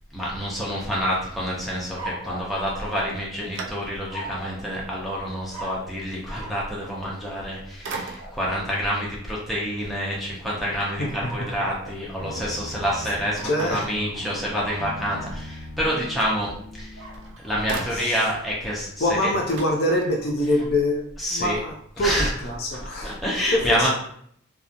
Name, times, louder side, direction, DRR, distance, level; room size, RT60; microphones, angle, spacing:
voice 1, 0.1-17.1 17.4-19.3 21.2-21.6 22.0-22.3 23.0-23.9, equal, ahead, -6 dB, 0.6 m, -27 dB
sound 1, 1.9-3.5 4.1-4.7 5.5-5.9 6.3-6.6 7.8-8.4 10.8-12.0 12.8-15.4 17.0-18.2 19.5-20.7, right 1 dB, 90° right, 1.0 m, -41 dB
sound 2, 2.9-4.3 4.9-5.0 7.2-7.5 7.8-8.6 13.4-14.6 16.7-16.8 17.1-18.5 18.8-18.9 19.1-20.4, right 3 dB, 55° right, 0.3 m, -38 dB
sound 3, 12.2-17.3, left 1 dB, 25° right, 0.9 m, -40 dB
voice 2, 13.4-13.9 17.9-18.2 19.0-23.1 23.5-23.9, left 1 dB, 45° left, 0 dB, 0.4 m, -24 dB
2.8 x 2.2 x 2.5 m, 0.66 s
head